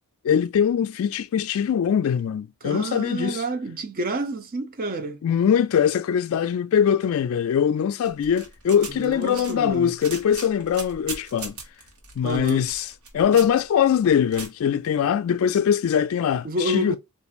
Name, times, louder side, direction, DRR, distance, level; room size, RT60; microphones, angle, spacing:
voice 1, 0.2-3.4 5.2-11.5 12.2-17.0, left 8 dB, 70° left, 0.3 m, -22 dB
voice 2, 2.6-5.2 8.9-9.9 12.2-12.6 16.4-17.0, right 1 dB, 40° right, 0.6 m, -29 dB
sound 1, 8.0-14.5, right 4 dB, 80° right, 1.2 m, -39 dB
4.1 x 2.5 x 2.4 m
head